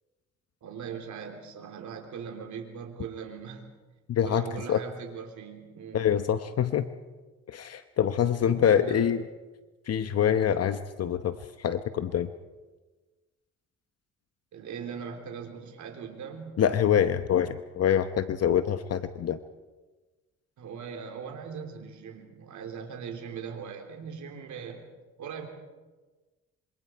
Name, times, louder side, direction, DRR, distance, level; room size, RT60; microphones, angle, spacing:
voice 1, 0.6-3.6 4.2-6.1 8.4-9.1 14.5-16.6 20.6-24.9 25.2-25.5, right 6 dB, 75° right, 3 dB, 3.6 m, -40 dB
voice 2, 4.1-4.4 4.7-4.8 5.9-6.9 7.5-9.2 9.9-12.3 16.6-19.4, left 9 dB, 55° left, 10 dB, 0.9 m, -25 dB
26.5 x 24.5 x 4.6 m, 1.2 s
cardioid pair, 90°, 30 cm